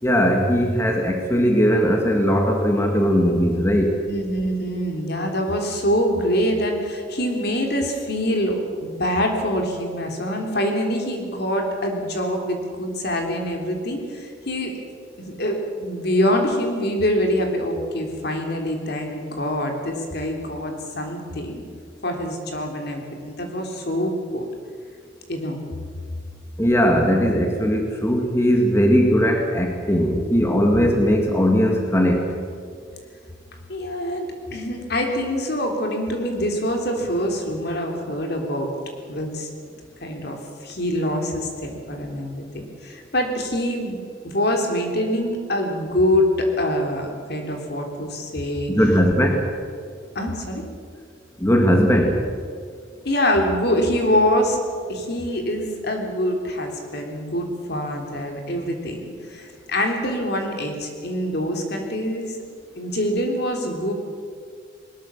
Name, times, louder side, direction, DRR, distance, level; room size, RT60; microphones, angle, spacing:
voice 1, 0.0-4.0 26.6-32.3 48.7-49.5 51.4-52.2, equal, 15° left, 2 dB, 1.9 m, -19 dB
voice 2, 4.1-14.8 15.2-21.7 22.0-24.5 25.3-25.6 33.7-38.7 39.1-39.5 40.0-48.7 50.2-50.6 53.0-54.6 54.9-62.4 62.8-63.9, equal, 55° left, 3 dB, 3.6 m, -25 dB
20.5 x 20.5 x 7.3 m, 2.2 s
head